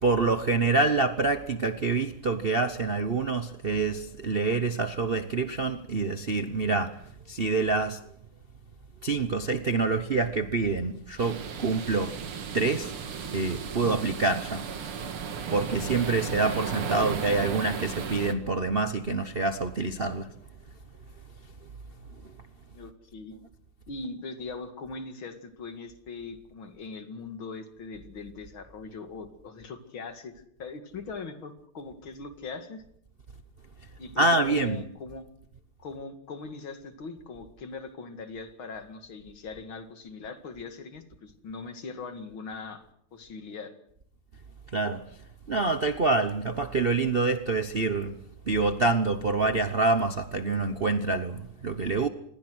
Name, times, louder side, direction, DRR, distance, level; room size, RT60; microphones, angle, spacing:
voice 1, 0.0-7.0 7.3-8.0 9.0-12.2 12.5-12.9 13.3-14.6 15.5-20.3 34.2-34.8 44.7-45.0 45.5-48.2 48.5-52.1, right 3 dB, 45° right, 0.7 m, -26 dB
sound 1, 11.2-18.3, right 6 dB, 85° right, 2.6 m, -35 dB
voice 2, 22.7-23.4 23.9-32.8 34.0-35.3 35.8-42.8 43.1-43.7, left 4 dB, 65° left, 2.8 m, -41 dB
27.0 x 20.5 x 6.3 m
omnidirectional pair, 2.4 m